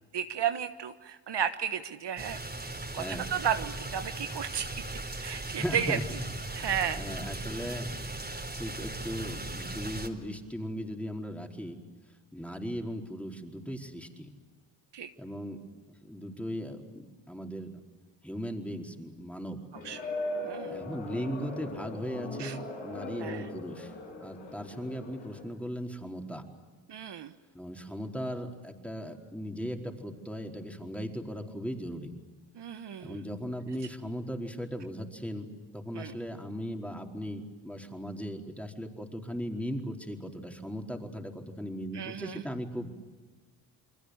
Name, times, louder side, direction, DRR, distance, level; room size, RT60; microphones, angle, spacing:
voice 1, 0.1-2.4 2.9-4.8 5.2-6.0 6.5-7.0 14.9-15.1 19.8-20.0 20.4-20.8 22.4-22.6 23.2-23.5 26.9-27.3 32.5-33.2 35.9-36.2 41.9-42.4, right 8 dB, 60° right, 9 dB, 1.3 m, -33 dB
sound 1, 2.2-10.1, right 2 dB, 20° right, 4.0 m, -38 dB
voice 2, 3.0-3.3 5.5-6.0 6.5-6.7 7.0-7.9 8.6-11.8 12.3-14.3 15.2-15.6 16.1-17.7 18.2-19.6 20.7-23.9 24.2-26.4 27.5-32.1 33.0-35.5 35.7-42.9, equal, 5° left, 2 dB, 4.5 m, -37 dB
sound 2, 19.7-25.4, left 2 dB, 80° left, 7.8 m, -39 dB
29.5 x 21.5 x 8.1 m, 1.4 s
supercardioid pair, 55°, 48 cm